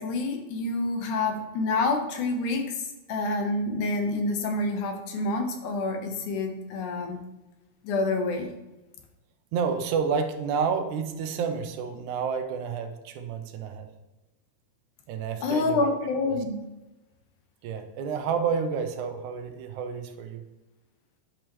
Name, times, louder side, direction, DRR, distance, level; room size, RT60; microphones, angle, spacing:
voice 1, 0.0-7.2 7.8-8.5 15.4-16.6, left 3 dB, 80° left, 4 dB, 2.5 m, -28 dB
voice 2, 9.5-13.9 15.1-15.9 16.3-16.4 17.6-20.4, right 6 dB, 80° right, 7 dB, 2.1 m, -30 dB
10.5 x 6.3 x 3.0 m, 1.0 s
omnidirectional pair, 3.5 m